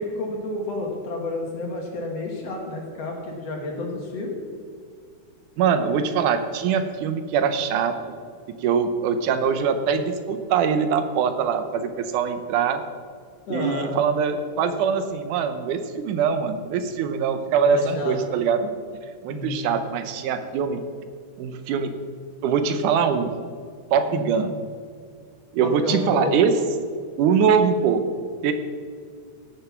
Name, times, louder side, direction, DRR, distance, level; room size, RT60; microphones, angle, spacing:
voice 1, 0.0-4.4 13.5-13.9 17.7-18.2 19.3-19.7 24.1-24.3 25.6-26.4, left 2 dB, 55° left, 0 dB, 2.7 m, -30 dB
voice 2, 5.6-7.9 8.6-12.8 13.5-18.7 19.2-20.8 21.4-21.9 22.4-23.3 23.9-24.5 25.5-26.5 27.2-28.0 28.4-28.5, right 6 dB, 80° right, 9 dB, 2.3 m, -22 dB
17.0 x 6.9 x 5.9 m, 2.1 s
omnidirectional pair, 3.6 m